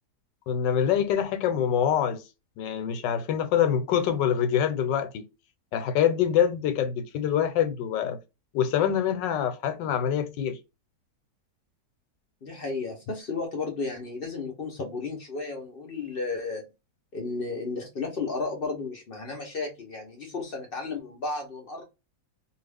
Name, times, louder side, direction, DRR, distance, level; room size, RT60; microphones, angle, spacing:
voice 1, 0.5-2.2 2.6-5.3 5.7-8.2 8.5-10.6, left 9 dB, 85° left, 1.3 m, -25 dB
voice 2, 12.4-16.7 17.1-21.8, left 3 dB, 50° left, 0.7 m, -33 dB
2.7 x 2.4 x 3.4 m
omnidirectional pair, 1.9 m